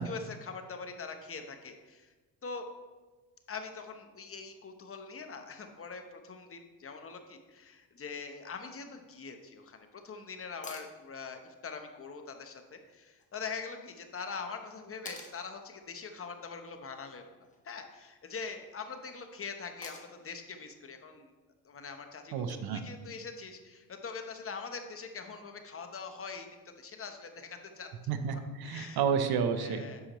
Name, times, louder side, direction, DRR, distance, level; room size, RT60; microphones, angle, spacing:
voice 1, 0.0-2.1 2.4-2.7 3.5-17.2 17.6-21.3 21.6-26.5 26.8-27.9 28.6-29.0 29.6-30.0, left 5 dB, 35° left, 6 dB, 0.9 m, -43 dB
sound 1, 10.6-10.9 13.2-13.3 15.1-15.4 17.4-17.8 19.8-20.3 22.4-22.5, left 3 dB, 20° left, 1.3 m, -47 dB
voice 2, 22.3-22.8 28.1-29.8, right 6 dB, 65° right, 8 dB, 0.8 m, -30 dB
9.6 x 6.5 x 3.0 m, 1.3 s
cardioid pair, 90°, 40 cm